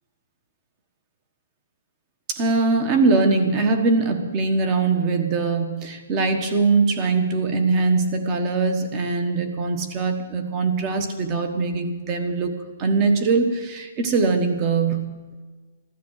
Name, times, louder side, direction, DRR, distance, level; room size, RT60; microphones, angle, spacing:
voice 1, 2.3-15.1, right 4 dB, 20° right, 6 dB, 1.3 m, -22 dB
15.5 x 12.5 x 6.6 m, 1.4 s
hypercardioid pair, 170°, 0 cm